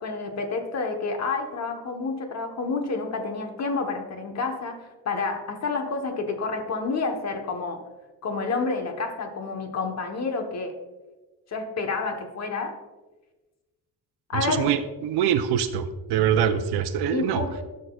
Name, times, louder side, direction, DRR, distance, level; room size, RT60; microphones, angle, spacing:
voice 1, 0.0-7.8 8.2-10.7 11.5-12.7 14.3-14.7 17.1-17.6, left 4 dB, 45° left, 4 dB, 1.1 m, -29 dB
voice 2, 14.3-17.4, right 9 dB, 90° right, 8 dB, 0.6 m, -24 dB
12.0 x 6.4 x 2.3 m, 1.2 s
cardioid pair, 130°, 38 cm